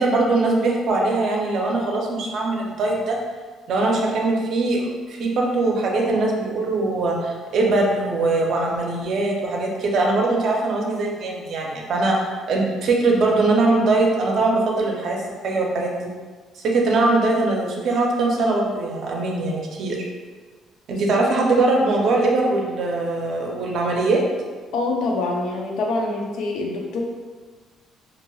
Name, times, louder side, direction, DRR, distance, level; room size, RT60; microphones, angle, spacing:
voice 1, 0.0-3.2 3.7-12.2 12.5-15.2 15.4-15.9 16.6-20.0 20.9-24.2, right 2 dB, 60° right, -1 dB, 0.5 m, -21 dB
voice 2, 24.7-27.0, left 2 dB, 80° left, 0 dB, 0.4 m, -25 dB
2.4 x 2.2 x 3.1 m, 1.4 s
cardioid pair, 140°, 0 cm